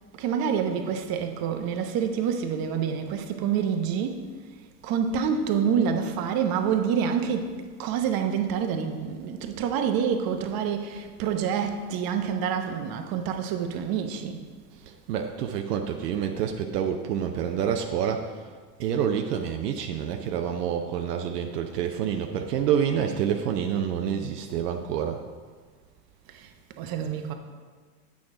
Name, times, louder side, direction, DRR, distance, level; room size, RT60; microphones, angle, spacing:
voice 1, 0.1-4.3 4.8-14.4 26.3-27.3, right 7 dB, 50° right, 1.0 m, -27 dB
voice 2, 14.9-18.5 18.8-25.2, right 8 dB, 80° right, 0.7 m, -28 dB
8.4 x 6.2 x 3.7 m
hypercardioid pair, 85°, 47 cm